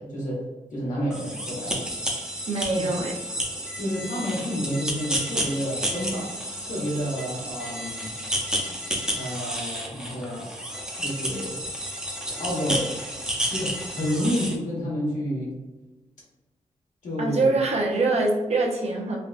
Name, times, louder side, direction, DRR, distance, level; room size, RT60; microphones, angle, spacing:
voice 1, 0.0-1.9 2.8-2.9 3.8-6.3 6.6-8.1 9.1-10.5 11.0-11.6 12.4-12.9 13.5-15.5 17.0-17.5, equal, 80° left, -5 dB, 1.3 m, -29 dB
sound 1, 1.1-14.6, equal, 5° right, 0.6 m, -31 dB
voice 2, 2.5-3.2 17.2-19.2, right 3 dB, 55° right, 0 dB, 0.6 m, -24 dB
3.4 x 2.2 x 2.4 m, 1.1 s
wide cardioid pair, 130°, 13 cm